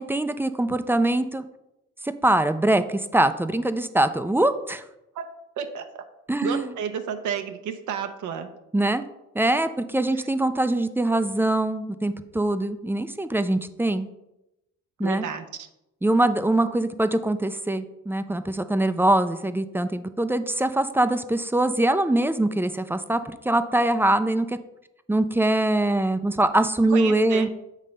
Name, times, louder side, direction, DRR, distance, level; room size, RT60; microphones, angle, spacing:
voice 1, 0.0-1.4 2.2-4.8 6.3-6.7 8.7-9.0 9.3-14.1 15.0-15.2 16.0-24.6 25.1-27.5, right 1 dB, 10° right, 11 dB, 0.3 m, -23 dB
voice 2, 5.6-6.0 6.4-8.5 10.1-10.3 15.0-15.7 26.9-27.5, right 7 dB, 75° right, 7 dB, 0.7 m, -31 dB
7.3 x 3.2 x 5.2 m, 0.88 s
cardioid pair, 90°, 30 cm